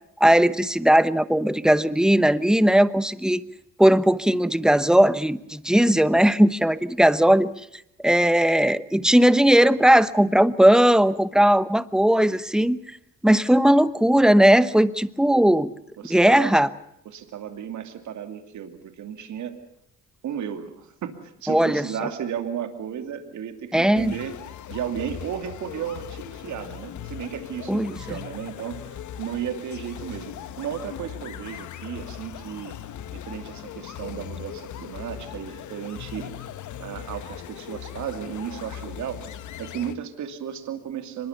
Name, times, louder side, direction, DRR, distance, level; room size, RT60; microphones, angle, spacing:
voice 1, 0.2-3.4 3.8-7.5 8.0-12.8 13.2-15.7 16.1-16.7 21.5-21.9 23.7-24.1 27.7-28.0, right 1 dB, ahead, 14 dB, 1.0 m, -18 dB
voice 2, 16.0-16.5 17.0-19.6 20.2-24.4 24.7-32.8 33.1-36.4 36.8-39.3 39.6-41.3, right 9 dB, 70° right, 7 dB, 2.6 m, -34 dB
sound 1, 24.0-40.0, left 10 dB, 75° left, 1.3 m, -39 dB
24.5 x 21.5 x 7.0 m, 0.77 s
cardioid pair, 90°, 30 cm